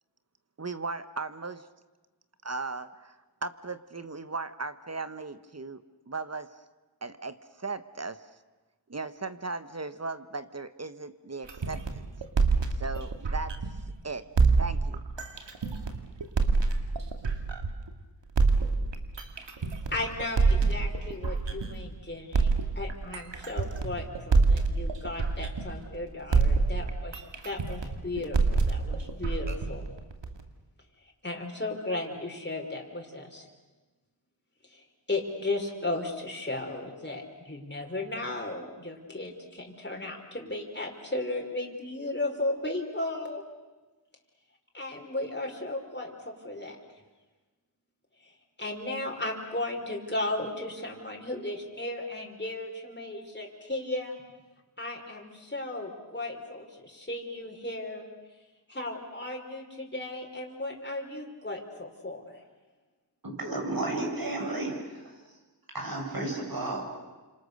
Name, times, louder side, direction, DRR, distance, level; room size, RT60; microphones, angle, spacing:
voice 1, 0.6-1.7 2.4-6.5 7.0-8.2 8.9-12.0 12.8-13.6 14.0-14.3 14.6-15.0, right 3 dB, 35° right, 12 dB, 1.4 m, -37 dB
sound 1, 11.5-13.9 14.4-17.9 18.4-21.9 22.3-26.0 26.3-30.4, right 4 dB, 80° right, 2.3 m, -26 dB
voice 2, 19.9-29.9 31.2-33.5 34.7-43.4 44.7-46.8 48.2-48.3 48.6-54.2 54.8-58.1 58.7-62.2, left 2 dB, 25° left, 1 dB, 4.9 m, -35 dB
voice 3, 63.2-65.1 65.7-66.8, right 2 dB, 55° right, 1 dB, 7.8 m, -32 dB
29.5 x 26.5 x 6.7 m, 1.2 s
cardioid pair, 50°, 43 cm